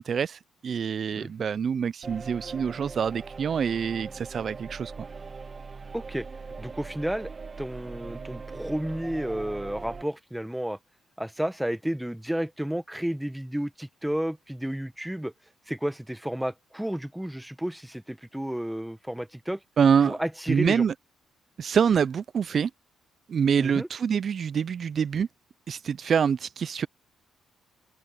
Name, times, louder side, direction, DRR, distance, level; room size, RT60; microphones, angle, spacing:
voice 1, 0.0-4.9 19.8-20.2 20.5-20.9 21.6-22.7 23.3-25.3 25.7-26.9, right 7 dB, 50° right, 0.3 m, -25 dB
sound 1, 2.0-10.0, right 4 dB, 35° right, 1.3 m, -41 dB
voice 2, 5.9-6.3 6.6-7.3 7.6-10.8 11.2-15.3 15.7-19.6 20.0-20.8 23.6-23.9, right 1 dB, 5° right, 1.3 m, -31 dB
open air
cardioid pair, 90°, 0 cm